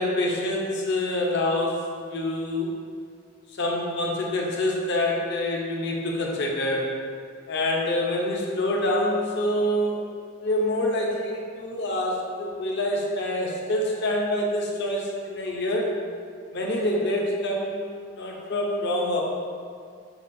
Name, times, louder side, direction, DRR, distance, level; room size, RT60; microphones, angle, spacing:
voice 1, 0.0-2.8 3.5-6.9 7.5-10.1 10.4-15.9 16.5-19.2, left 1 dB, 50° left, -2 dB, 0.6 m, -26 dB
6.4 x 2.3 x 2.5 m, 2.2 s
head